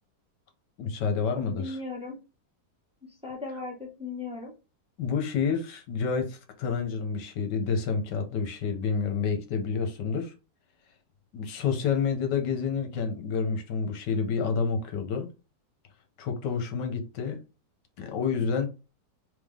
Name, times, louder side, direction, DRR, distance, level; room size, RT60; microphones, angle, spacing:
voice 1, 0.8-1.8 5.0-10.3 11.3-15.3 16.2-17.4 18.0-18.7, left 5 dB, 75° left, 1.5 m, -29 dB
voice 2, 1.3-2.2 3.2-4.5, left 3 dB, 5° right, 1.2 m, -37 dB
3.6 x 3.3 x 3.6 m
omnidirectional pair, 1.9 m